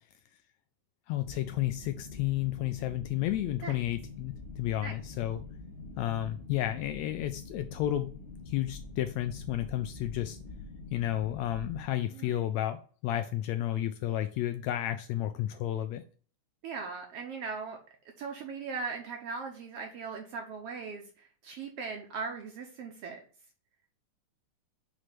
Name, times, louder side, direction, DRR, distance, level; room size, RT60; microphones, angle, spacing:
voice 1, 1.1-5.4 6.0-8.1 8.5-10.4 10.9-16.0, left 13 dB, 80° left, 9 dB, 1.6 m, -32 dB
sound 1, 1.2-11.9, left 3 dB, 45° left, 2.0 m, -46 dB
voice 2, 12.1-12.4 16.6-17.8 18.2-21.0 21.4-23.2, right 5 dB, 70° right, 3 dB, 1.6 m, -39 dB
6.2 x 3.2 x 5.8 m, 0.41 s
omnidirectional pair, 3.5 m